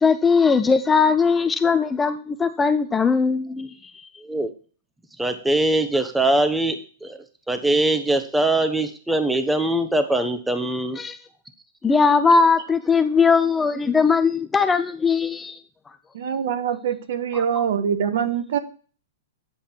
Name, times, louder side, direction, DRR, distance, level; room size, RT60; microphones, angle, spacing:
voice 1, 0.0-3.7 11.0-11.2 11.8-15.6, left 5 dB, 10° left, 0.4 m, -19 dB
voice 2, 5.2-7.2 7.5-11.0, right 1 dB, 5° right, 0.8 m, -22 dB
voice 3, 16.1-18.6, right 8 dB, 65° right, 1.2 m, -24 dB
9.2 x 5.2 x 4.4 m
hypercardioid pair, 150°, 0 cm